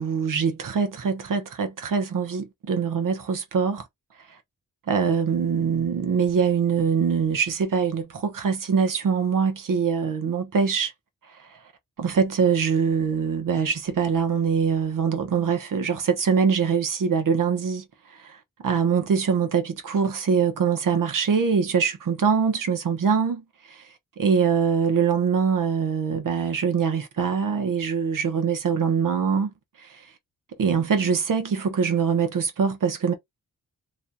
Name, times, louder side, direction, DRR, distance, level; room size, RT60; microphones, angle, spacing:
voice 1, 0.0-3.9 4.9-10.9 11.5-11.6 12.0-23.8 24.2-29.5 29.8-30.0 30.6-33.1, right 6 dB, 65° right, 1.0 m, -23 dB
3.1 x 2.4 x 4.0 m
wide cardioid pair, 135°, 34 cm